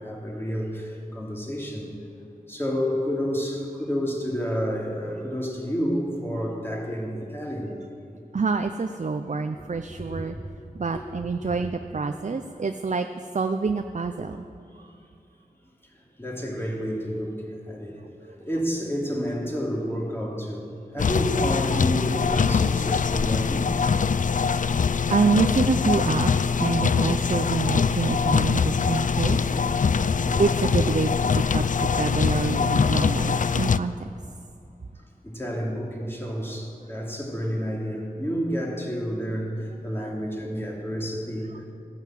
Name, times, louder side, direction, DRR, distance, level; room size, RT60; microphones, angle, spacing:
voice 1, 0.0-1.9 2.5-7.7 9.9-10.4 10.9-11.0 11.4-11.6 15.9-23.7 29.2-29.9 30.2-30.5 35.2-41.7, equal, 15° left, -2 dB, 2.7 m, -30 dB
voice 2, 8.3-10.4 10.7-13.1 13.3-14.5 18.2-18.4 25.1-29.4 30.4-34.1, right 4 dB, 50° right, 7 dB, 0.5 m, -26 dB
sound 1, 21.0-33.8, left 6 dB, 60° left, 0.4 m, -23 dB
14.5 x 9.0 x 7.6 m, 2.6 s
wide cardioid pair, 65°, 15 cm